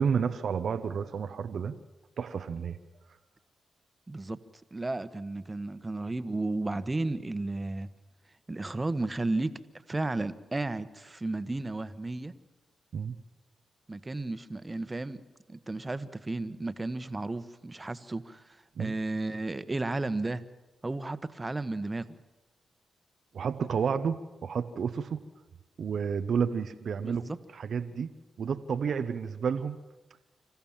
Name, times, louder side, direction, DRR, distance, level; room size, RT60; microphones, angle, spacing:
voice 1, 0.0-1.7 2.2-2.8 12.9-13.1 18.8-18.9 23.3-25.2 25.8-27.2 27.5-28.1 28.4-29.8, right 6 dB, 70° right, 10 dB, 0.8 m, -30 dB
voice 2, 4.1-4.4 4.7-7.9 8.5-9.6 9.9-12.3 13.9-15.2 15.5-20.4 20.8-22.1 27.0-27.4, right 2 dB, 30° right, 12 dB, 1.3 m, -33 dB
26.5 x 14.5 x 7.4 m, 1.1 s
supercardioid pair, 40°, 0 cm